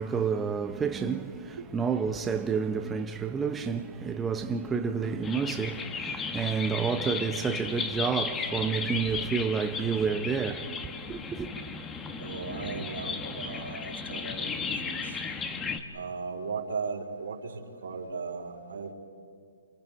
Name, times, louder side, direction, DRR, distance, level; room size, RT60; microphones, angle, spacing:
voice 1, 0.0-10.8 11.1-11.5, right 6 dB, 10° right, 0.7 m, -30 dB
sound 1, 5.2-15.8, left 5 dB, 15° left, 1.3 m, -35 dB
voice 2, 12.2-15.2 15.9-18.9, right 4 dB, 80° right, 4.2 m, -37 dB
29.0 x 28.0 x 5.2 m
hypercardioid pair, 145°, 0 cm